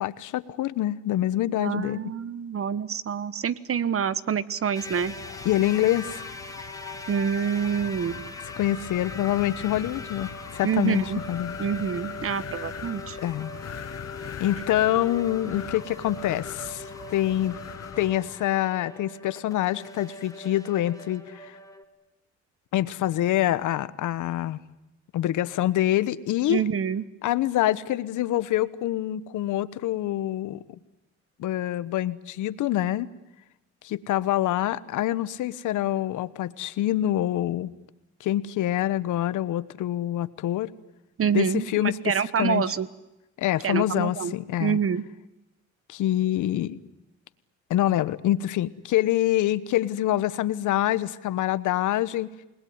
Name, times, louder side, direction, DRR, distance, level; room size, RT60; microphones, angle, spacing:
voice 1, 0.0-2.0 5.4-6.2 8.6-11.6 13.2-13.5 14.4-17.6 18.0-21.6 22.7-24.6 25.1-26.6 27.2-30.6 31.4-33.1 33.8-37.7 38.2-40.7 41.3-42.6 43.4-44.8 45.9-46.8 47.7-52.3, left 13 dB, 85° left, 16 dB, 1.1 m, -26 dB
voice 2, 1.6-5.1 7.1-8.2 10.6-11.2 11.6-13.2 26.5-27.0 41.2-42.9 43.6-44.3 44.6-45.0, right 7 dB, 45° right, 16 dB, 1.3 m, -27 dB
sound 1, 4.7-21.8, left 1 dB, 10° left, 2.8 m, -41 dB
Wind, 4.8-18.4, left 10 dB, 55° left, 1.2 m, -41 dB
28.5 x 20.5 x 9.6 m, 0.97 s
cardioid pair, 90°, 30 cm